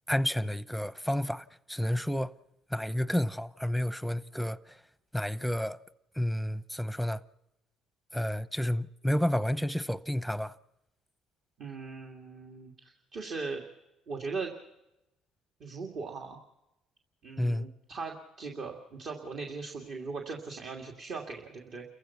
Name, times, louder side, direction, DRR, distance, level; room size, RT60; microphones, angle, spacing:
voice 1, 0.1-2.3 2.7-4.8 5.1-5.8 6.2-7.2 8.1-10.5 17.4-17.7, left 1 dB, ahead, 0.8 m, -30 dB
voice 2, 11.6-13.6 14.1-14.5 15.6-16.4 17.2-21.8, right 4 dB, 60° right, 2.5 m, -39 dB
29.0 x 15.5 x 6.0 m
supercardioid pair, 85°, 0 cm